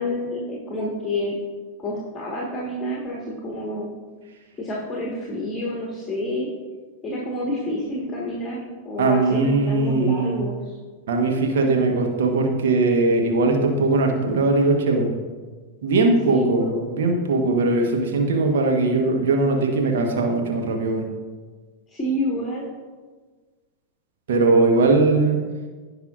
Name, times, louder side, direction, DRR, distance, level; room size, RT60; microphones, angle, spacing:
voice 1, 0.0-1.4 1.8-3.9 4.6-6.5 7.0-10.8 16.2-16.8 21.9-22.7, left 1 dB, 15° left, -3 dB, 1.5 m, -28 dB
voice 2, 9.0-10.4 11.1-15.1 15.8-21.1 24.3-25.4, right 3 dB, 60° right, 2 dB, 1.2 m, -20 dB
16.5 x 5.5 x 2.5 m, 1.4 s
figure-of-eight pair, 90°, 0 cm